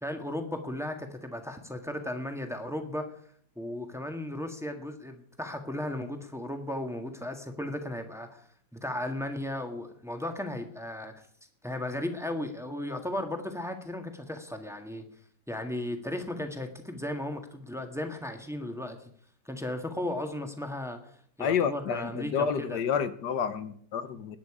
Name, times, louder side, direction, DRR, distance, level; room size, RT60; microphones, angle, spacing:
voice 1, 0.0-3.1 3.5-8.5 8.8-11.1 11.6-15.0 15.5-19.1 19.4-21.1 21.4-22.8, left 1 dB, ahead, 4 dB, 1.4 m, -35 dB
voice 2, 21.4-24.4, left 7 dB, 70° left, 12 dB, 1.6 m, -29 dB
20.0 x 9.6 x 4.9 m, 0.62 s
omnidirectional pair, 1.9 m